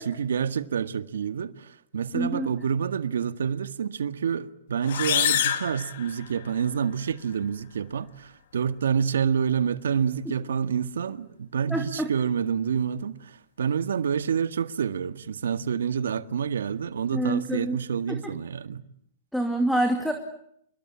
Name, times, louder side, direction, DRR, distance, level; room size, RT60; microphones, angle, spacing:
voice 1, 0.0-18.8, right 7 dB, 90° right, 1.8 m, -28 dB
voice 2, 2.1-2.5 10.3-10.4 11.7-12.1 17.1-17.8 18.1-18.3 19.3-20.1, right 1 dB, ahead, 2.5 m, -26 dB
sound 1, 4.8-6.7, left 10 dB, 60° left, 2.7 m, -27 dB
28.0 x 22.5 x 8.7 m
hypercardioid pair, 155°, 0 cm